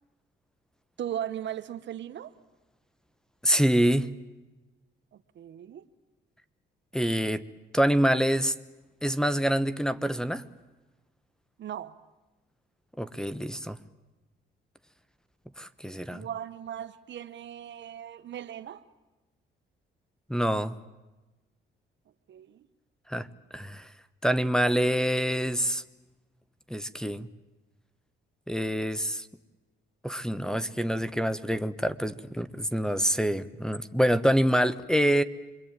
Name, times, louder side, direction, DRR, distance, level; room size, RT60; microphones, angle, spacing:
voice 1, 1.0-2.3 5.3-5.9 11.6-12.0 16.1-18.8 22.3-22.7, right 10 dB, 65° right, 1.3 m, -37 dB
voice 2, 3.4-4.1 6.9-7.4 7.7-8.5 9.0-10.4 13.0-13.8 15.6-16.3 20.3-20.8 23.1-23.3 23.5-23.9 24.2-25.8 26.7-27.3 28.5-29.3 30.0-35.2, equal, 5° left, 1.2 m, -26 dB
27.5 x 23.0 x 9.1 m
cardioid pair, 90°, 20 cm